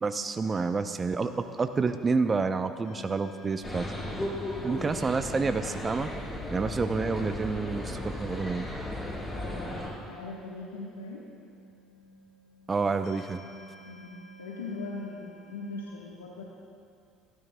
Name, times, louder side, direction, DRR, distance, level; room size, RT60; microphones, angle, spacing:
voice 1, 0.0-3.9 4.6-6.1 6.5-8.7 12.7-13.4, right 4 dB, 30° right, 9 dB, 0.6 m, -29 dB
sound 1, 2.8-15.9, left 1 dB, 60° left, 1.8 m, -51 dB
sound 2, 3.6-9.9, left 1 dB, 20° left, 4.0 m, -36 dB
voice 2, 9.3-11.2 13.8-14.1 14.4-16.4, left 3 dB, 90° left, -3 dB, 1.3 m, -40 dB
27.0 x 13.0 x 2.2 m, 2.4 s
hypercardioid pair, 60°, 0 cm